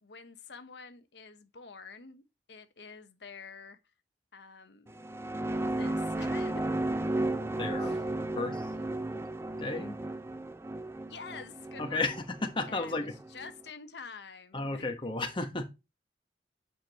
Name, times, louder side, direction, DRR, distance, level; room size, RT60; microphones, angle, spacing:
voice 1, 0.0-2.2 2.5-3.8 4.3-4.9 5.7-6.7 7.8-8.0 8.7-8.8 11.1-12.1 12.7-12.9 13.3-14.8, left 5 dB, 75° left, 1.0 m, -47 dB
sound 1, 4.9-13.5, right 1 dB, 15° right, 0.4 m, -34 dB
voice 2, 7.6-8.0 8.4-8.7 9.6-10.0 11.8-13.1 14.5-15.7, left 3 dB, 30° left, 1.2 m, -33 dB
8.6 x 5.2 x 2.9 m
head